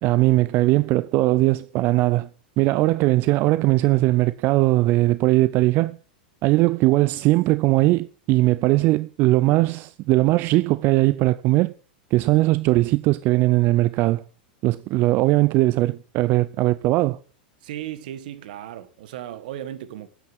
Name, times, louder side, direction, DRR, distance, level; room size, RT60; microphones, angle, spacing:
voice 1, 0.0-2.3 2.6-6.0 6.4-11.7 12.1-14.2 14.6-17.2, right 18 dB, 45° right, 0.5 m, -19 dB
voice 2, 17.6-20.1, right 11 dB, 65° right, 1.8 m, -35 dB
10.0 x 9.2 x 7.3 m
hypercardioid pair, 100°, 5 cm